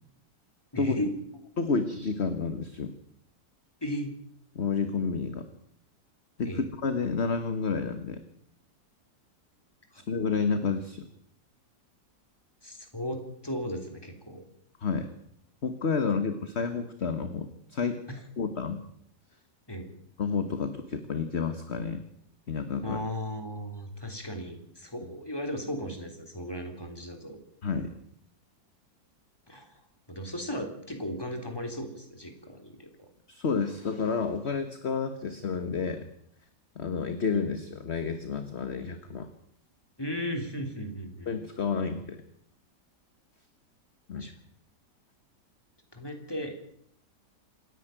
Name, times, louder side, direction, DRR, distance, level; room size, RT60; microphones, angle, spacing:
voice 1, 0.7-1.2 3.8-4.1 6.5-6.6 9.9-10.0 12.6-14.4 18.1-18.2 19.7-19.9 22.8-27.4 29.5-29.8 30.1-32.9 40.0-41.3 44.2-44.3 45.9-46.6, equal, 15° left, 4 dB, 3.5 m, -36 dB
voice 2, 1.6-2.9 4.5-5.5 6.4-8.2 10.1-11.1 14.8-15.1 15.6-18.0 18.4-18.8 20.2-22.0 22.5-23.0 27.6-27.9 33.3-36.0 36.7-39.3 41.3-42.2 44.1-44.3, left 5 dB, 40° left, 9 dB, 1.5 m, -30 dB
27.0 x 10.5 x 9.1 m, 0.72 s
omnidirectional pair, 1.9 m